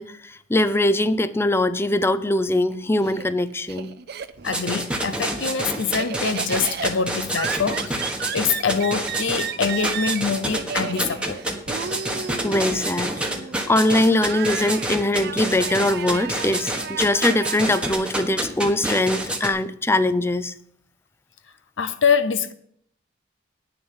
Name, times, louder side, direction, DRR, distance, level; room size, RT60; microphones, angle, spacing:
voice 1, 0.0-3.9 12.4-13.1 13.7-20.5, left 1 dB, 15° left, 0.5 m, -22 dB
Laughter, 2.5-4.7 5.0-17.9, right 7 dB, 60° right, 0.6 m, -34 dB
voice 2, 4.4-8.0 8.3-11.6 21.8-22.5, left 6 dB, 75° left, 0.7 m, -24 dB
sound 1, 4.4-19.5, right 1 dB, 5° right, 1.3 m, -27 dB
9.6 x 6.9 x 7.2 m
head